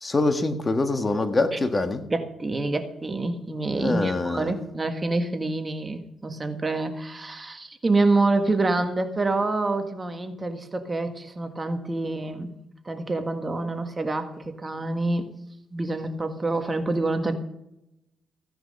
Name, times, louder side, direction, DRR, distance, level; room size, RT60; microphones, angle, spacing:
voice 1, 0.0-2.0 3.8-4.5, left 2 dB, 25° left, 7 dB, 1.5 m, -24 dB
voice 2, 2.1-12.5 12.8-15.3 15.7-17.3, right 2 dB, 25° right, 7 dB, 1.6 m, -27 dB
16.0 x 10.0 x 5.4 m, 0.83 s
cardioid pair, 90°, 0 cm